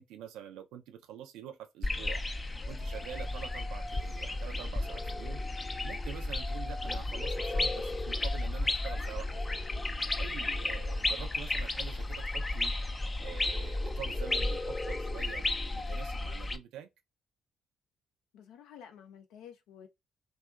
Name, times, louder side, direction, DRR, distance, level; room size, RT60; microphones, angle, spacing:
voice 1, 0.0-2.2 2.7-5.4 5.8-9.7 10.2-12.7 13.2-16.9, right 10 dB, 75° right, 0.4 m, -46 dB
sound 1, 1.8-16.6, left 2 dB, 25° left, 0.4 m, -33 dB
voice 2, 18.3-19.9, left 8 dB, 70° left, 0.5 m, -51 dB
2.7 x 2.3 x 2.3 m
hypercardioid pair, 50°, 0 cm